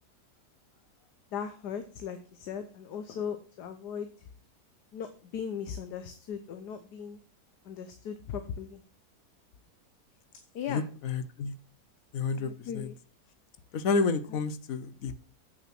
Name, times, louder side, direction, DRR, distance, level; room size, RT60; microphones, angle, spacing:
voice 1, 1.3-4.1 4.9-7.2 7.6-8.8 10.5-10.8 12.4-12.9 14.3-14.4, left 7 dB, 85° left, 8 dB, 1.5 m, -38 dB
voice 2, 10.7-11.5 12.1-12.9 13.7-15.2, left 4 dB, 65° left, 13 dB, 1.1 m, -30 dB
8.3 x 6.3 x 5.9 m, 0.38 s
omnidirectional pair, 1.7 m